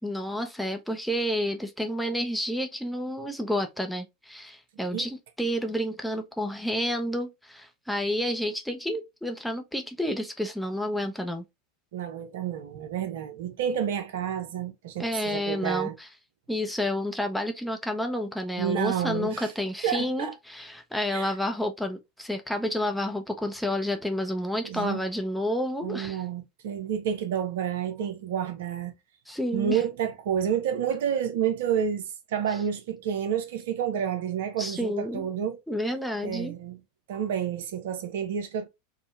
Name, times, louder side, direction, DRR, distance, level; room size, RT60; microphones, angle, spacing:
voice 1, 0.0-11.4 15.0-16.1 16.5-26.2 29.3-29.8 34.6-35.3 35.7-36.6, left 1 dB, ahead, 0.6 m, -30 dB
voice 2, 11.9-16.0 18.6-19.5 19.8-20.3 21.1-21.3 24.6-25.0 25.8-28.9 29.5-35.6 36.2-36.8 37.1-38.7, right 8 dB, 60° right, 0.5 m, -29 dB
3.6 x 2.1 x 2.3 m
figure-of-eight pair, 85°, 0 cm